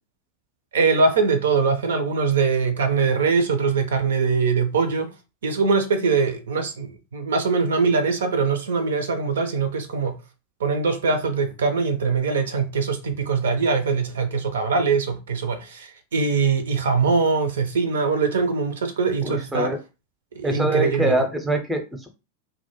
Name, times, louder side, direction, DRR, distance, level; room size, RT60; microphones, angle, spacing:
voice 1, 0.7-5.1 5.4-10.2 10.6-19.7 20.3-21.2, right 4 dB, 65° right, 0.4 m, -22 dB
voice 2, 19.2-19.8 20.4-22.1, right 1 dB, 10° right, 0.6 m, -24 dB
2.1 x 2.1 x 2.9 m
figure-of-eight pair, 90°, 0 cm